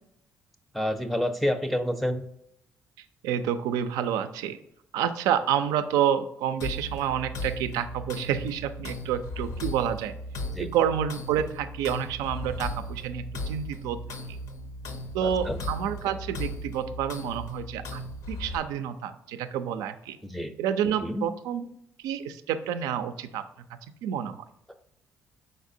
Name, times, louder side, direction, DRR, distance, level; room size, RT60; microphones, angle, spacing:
voice 1, 0.7-2.2 10.5-10.7 15.2-15.6 20.2-20.5 21.0-21.3, equal, ahead, 5 dB, 0.5 m, -28 dB
voice 2, 3.2-4.6 4.9-10.1 10.6-14.0 15.1-20.2 20.6-21.7 22.0-23.5 24.0-24.4, right 9 dB, 85° right, 11 dB, 0.3 m, -29 dB
sound 1, 6.6-18.6, left 1 dB, 75° left, 0.6 m, -37 dB
5.0 x 4.0 x 2.6 m, 0.77 s
supercardioid pair, 65°, 6 cm